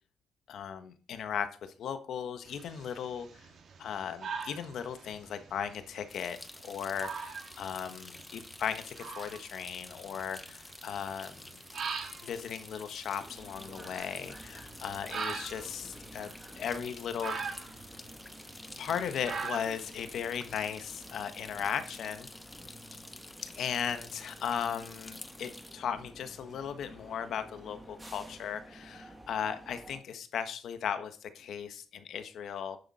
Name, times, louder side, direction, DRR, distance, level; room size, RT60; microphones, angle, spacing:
voice 1, 0.5-3.5 3.8-6.4 6.6-11.4 12.2-16.3 16.6-17.7 18.8-22.3 23.4-32.8, left 8 dB, 70° left, 9 dB, 1.4 m, -37 dB
sound 1, 2.5-21.2, right 5 dB, 55° right, 1.9 m, -44 dB
sound 2, 6.1-25.7, left 2 dB, 15° left, 1.0 m, -50 dB
sound 3, 13.2-30.0, right 1 dB, 10° right, 1.9 m, -52 dB
10.0 x 7.1 x 4.3 m, 0.38 s
cardioid pair, 90°, 0 cm